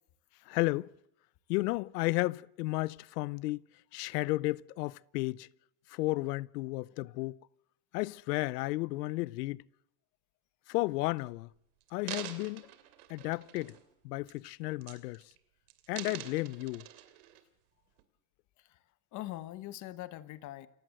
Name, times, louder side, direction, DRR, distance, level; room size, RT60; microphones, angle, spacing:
voice 1, 0.5-0.9 1.5-3.6 3.9-5.5 5.9-7.4 7.9-9.6 10.7-11.5 11.9-12.7 13.1-13.8 14.0-15.2 15.9-16.8, left 21 dB, 85° left, 0.8 m, -33 dB
sound 1, 10.8-11.2 11.8-13.9 14.3-14.5 14.8-15.4 15.7-17.4 18.0-18.1, right 14 dB, 70° right, 2.9 m, -45 dB
voice 2, 19.1-20.7, left 15 dB, 40° left, 1.2 m, -42 dB
28.5 x 16.0 x 7.8 m
supercardioid pair, 155°, 47 cm